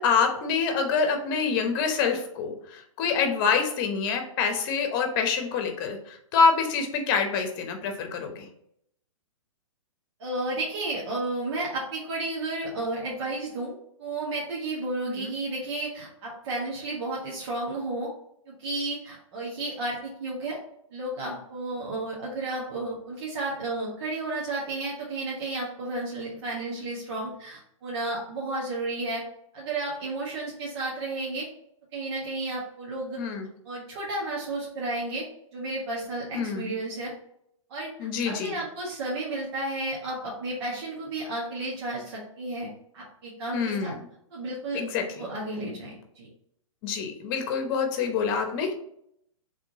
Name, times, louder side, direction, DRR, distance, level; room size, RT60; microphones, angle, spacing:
voice 1, 0.0-8.5 15.0-15.3 33.2-33.5 36.3-36.7 38.0-38.6 43.5-44.0 44.7-45.3 46.8-48.7, left 5 dB, 40° left, 5 dB, 0.9 m, -26 dB
voice 2, 10.2-13.7 14.0-18.1 18.5-20.6 20.9-29.2 29.5-31.5 31.9-33.2 33.6-35.2 35.5-37.1 37.7-37.9 38.2-42.7 42.9-43.9 44.3-46.3, right 2 dB, 55° right, -5 dB, 1.4 m, -32 dB
3.6 x 3.4 x 3.9 m, 0.72 s
hypercardioid pair, 130°, 17 cm